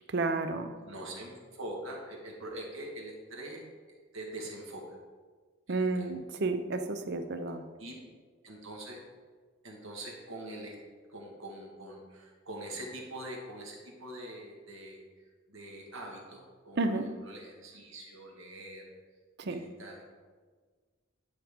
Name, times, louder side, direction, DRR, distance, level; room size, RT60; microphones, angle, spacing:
voice 1, 0.1-0.7 5.7-7.7 16.8-17.1 19.4-19.6, right 3 dB, 50° right, 9 dB, 0.5 m, -31 dB
voice 2, 0.8-3.6 4.1-5.0 5.7-6.1 7.8-8.0 8.4-9.0 9.6-10.8 11.1-15.0 15.5-16.8 17.2-18.8 19.4-20.0, right 1 dB, 70° right, -1 dB, 1.6 m, -43 dB
10.5 x 5.0 x 3.6 m, 1.5 s
head